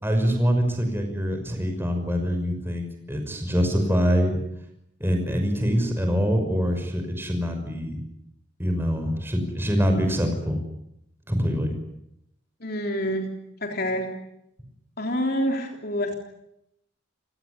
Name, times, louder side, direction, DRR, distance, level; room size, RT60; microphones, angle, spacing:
voice 1, 0.0-4.3 5.0-8.0 8.6-10.6 11.3-11.7, equal, 10° right, 4 dB, 5.9 m, -24 dB
voice 2, 12.6-13.3 13.6-14.1 15.0-16.1, equal, 50° left, 3 dB, 3.6 m, -27 dB
28.5 x 19.0 x 9.8 m, 0.81 s
head